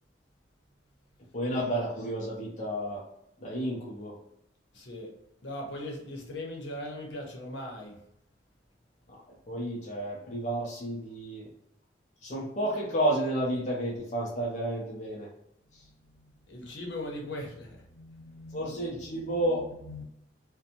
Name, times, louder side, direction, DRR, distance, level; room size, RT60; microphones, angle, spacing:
voice 1, 1.3-3.0 3.4-4.2 9.1-11.5 12.2-15.3 15.7-15.8 18.5-19.7, right 1 dB, 40° left, -3 dB, 0.5 m, -31 dB
voice 2, 4.7-5.1 5.4-8.0 15.8-18.7 19.0-20.0, left 1 dB, 80° left, -1 dB, 0.8 m, -40 dB
2.6 x 2.1 x 2.8 m, 0.78 s
head